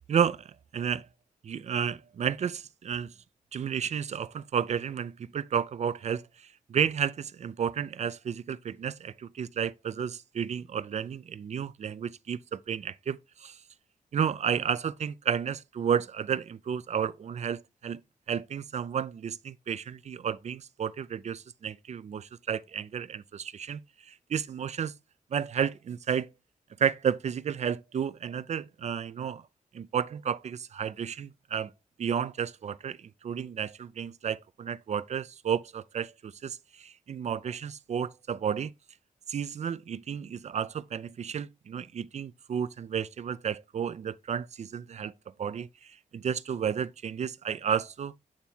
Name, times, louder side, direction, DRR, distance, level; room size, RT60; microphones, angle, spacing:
voice 1, 0.1-1.1 1.4-3.1 3.5-6.3 6.7-13.6 14.1-18.0 18.3-23.8 24.1-24.9 25.3-26.3 26.8-29.4 29.7-31.7 32.0-38.7 39.3-45.1 45.4-48.1, right 8 dB, 60° right, 0.5 m, -32 dB
8.8 x 3.5 x 4.3 m
cardioid pair, 90°, 13 cm